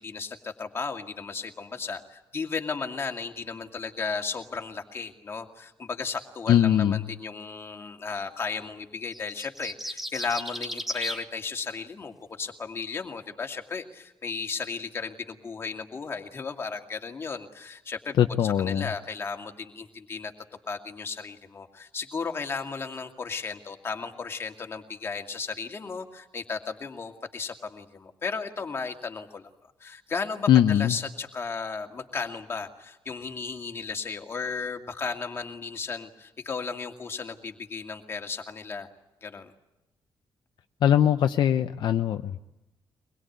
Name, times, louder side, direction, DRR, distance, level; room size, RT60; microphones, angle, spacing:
voice 1, 0.0-18.2 18.4-20.3 20.7-29.5 29.8-38.9 39.2-39.5, left 5 dB, 30° left, 4 dB, 2.3 m, -35 dB
voice 2, 6.5-7.0 18.2-18.9 30.5-30.9 40.8-42.4, left 10 dB, 65° left, 8 dB, 0.9 m, -21 dB
sound 1, 9.1-11.2, equal, ahead, 2.1 m, -34 dB
24.0 x 21.5 x 9.4 m, 0.94 s
wide cardioid pair, 175°, 8 cm